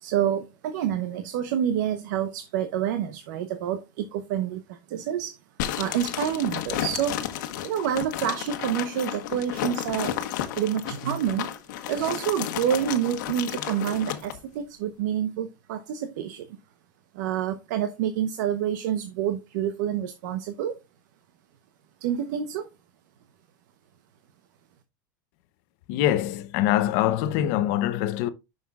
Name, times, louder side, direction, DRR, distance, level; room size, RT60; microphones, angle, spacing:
voice 1, 0.0-5.4 5.8-7.2 7.6-10.2 10.6-11.5 11.9-16.5 17.1-20.8 22.0-22.7, right 9 dB, 70° right, 0.9 m, -28 dB
sound 1, 5.6-14.4, left 11 dB, 70° left, 1.2 m, -32 dB
voice 2, 25.9-28.3, left 12 dB, 50° left, 0.8 m, -24 dB
9.3 x 6.4 x 2.4 m
supercardioid pair, 170°, 10 cm